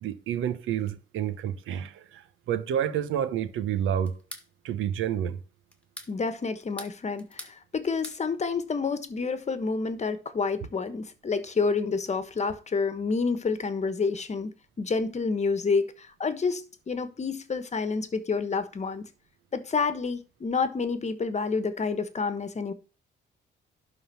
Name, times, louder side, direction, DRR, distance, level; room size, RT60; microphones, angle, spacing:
voice 1, 0.0-4.1 4.6-5.4, right 9 dB, 85° right, 1.0 m, -29 dB
sound 1, 4.1-4.5 5.7-6.1 6.6-7.6 7.8-8.2, left 1 dB, 5° left, 1.8 m, -43 dB
voice 2, 6.1-14.5 14.8-19.0 19.5-22.7, left 4 dB, 35° left, 1.2 m, -29 dB
11.5 x 3.9 x 5.7 m
cardioid pair, 90°, 20 cm